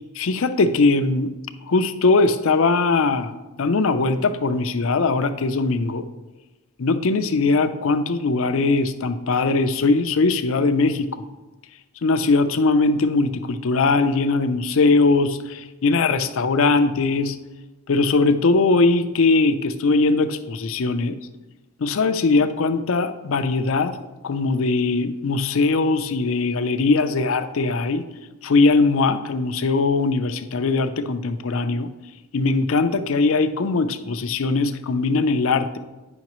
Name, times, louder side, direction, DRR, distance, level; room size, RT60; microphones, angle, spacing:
voice 1, 0.1-1.3 1.7-6.0 6.8-11.2 12.0-17.4 17.9-21.2 21.8-24.0 24.2-28.0 28.4-31.9 32.3-35.8, left 3 dB, 70° left, 9 dB, 0.5 m, -20 dB
9.6 x 5.7 x 3.0 m, 1.1 s
head